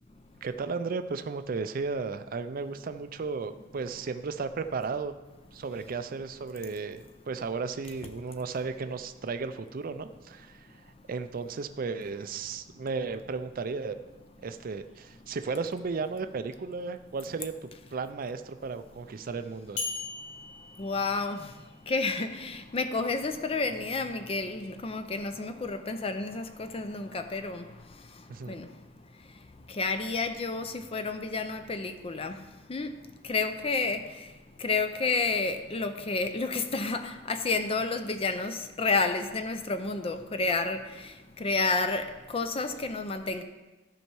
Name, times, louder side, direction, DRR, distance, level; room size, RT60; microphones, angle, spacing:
voice 1, 0.4-5.1 5.5-10.6 11.1-14.0 14.4-19.8 28.3-28.6, right 4 dB, 50° right, 0.4 m, -34 dB
sound 1, 19.8-21.8, left 4 dB, 85° left, 1.8 m, -38 dB
voice 2, 20.3-43.4, left 3 dB, 30° left, 0.5 m, -31 dB
13.0 x 5.5 x 4.6 m
head